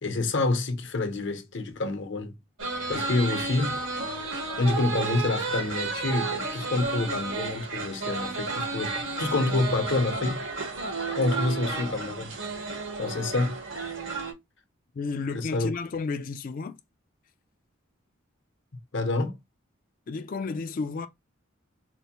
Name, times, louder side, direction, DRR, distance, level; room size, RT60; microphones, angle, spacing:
voice 1, 0.0-2.4 2.9-3.8 4.6-10.4 11.1-12.4 13.0-13.6 15.3-15.7 18.9-19.4, left 2 dB, 65° left, 0.8 m, -27 dB
sound 1, 2.6-14.3, right 3 dB, 70° right, 1.1 m, -32 dB
voice 2, 14.9-16.8 20.1-21.1, left 4 dB, 45° left, 0.3 m, -32 dB
4.3 x 2.1 x 2.9 m
head